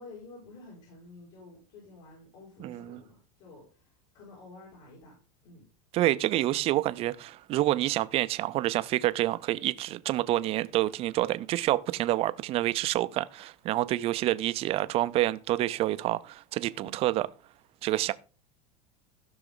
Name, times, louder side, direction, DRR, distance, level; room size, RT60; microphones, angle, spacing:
voice 1, 0.0-5.2 5.4-5.7 16.8-17.0, left 3 dB, 60° left, 5.4 m, -50 dB
voice 2, 2.6-3.0 5.9-17.3 17.8-18.1, right 15 dB, 30° right, 0.5 m, -28 dB
15.5 x 6.1 x 3.9 m
supercardioid pair, 155°, 19 cm